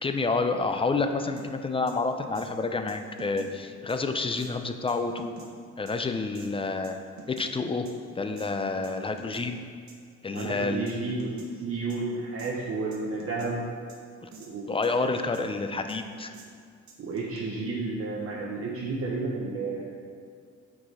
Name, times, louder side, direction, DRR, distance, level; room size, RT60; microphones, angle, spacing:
voice 1, 0.0-5.3 5.8-7.0 7.3-9.6 10.2-10.9 14.7-16.3, left 3 dB, 20° left, 7 dB, 0.4 m, -29 dB
sound 1, 1.4-1.5 1.9-2.0 2.3-2.5 2.9-3.5 3.9-4.0 4.4-4.5 4.9-5.5 5.9-6.0 6.4-6.5 6.8-7.5 7.9-8.0 8.4-8.5 8.8-9.5 9.9-10.0 10.4-10.5 10.9-11.0 11.2-11.5 11.9-12.0 12.4-12.5 12.9-13.5 13.9-14.0 14.3-14.5 14.8-15.5 15.9-16.0 16.3-16.5 16.9-17.4, right 3 dB, 70° right, 1.1 m, -46 dB
voice 2, 10.3-11.3 11.6-13.6 14.4-14.7 17.0-19.8, right 3 dB, 50° right, -4 dB, 0.9 m, -31 dB
6.1 x 4.8 x 4.1 m, 2.1 s
cardioid pair, 90°, 30 cm